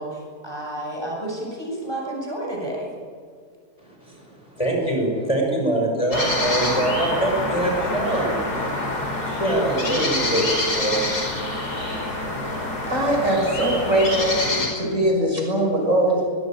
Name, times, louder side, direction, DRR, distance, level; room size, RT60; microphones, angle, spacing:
voice 1, 0.0-2.9, right 1 dB, 15° right, -1 dB, 7.5 m, -31 dB
voice 2, 3.8-8.4 9.3-11.0, right 1 dB, 20° left, 0 dB, 6.2 m, -24 dB
sound 1, 6.1-14.7, left 1 dB, 75° left, 5.6 m, -26 dB
voice 3, 12.9-14.4 14.8-16.3, right 1 dB, 50° right, -1 dB, 6.7 m, -21 dB
23.5 x 21.5 x 9.2 m, 2.1 s
omnidirectional pair, 1.7 m